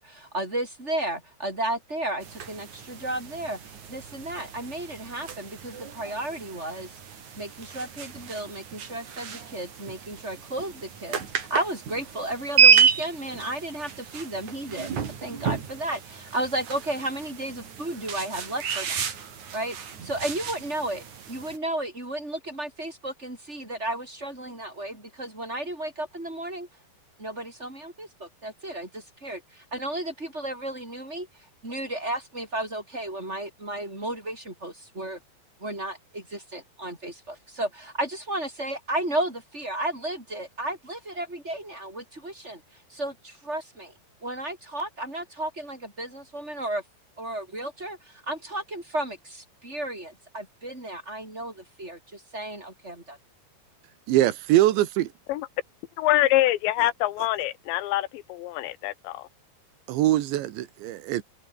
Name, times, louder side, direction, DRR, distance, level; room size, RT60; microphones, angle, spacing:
voice 1, 0.0-7.0 7.4-19.1 19.5-19.8 20.0-26.7 27.2-35.2 35.6-43.9 44.2-46.8 47.2-53.2, right 1 dB, 15° right, 7.9 m, -33 dB
sound 1, 2.2-21.6, right 7 dB, 45° right, 3.9 m, -29 dB
voice 2, 54.1-55.1 59.9-61.2, right 14 dB, 85° right, 3.7 m, -22 dB
voice 3, 56.0-59.3, left 15 dB, 85° left, 3.4 m, -25 dB
omnidirectional pair, 5.1 m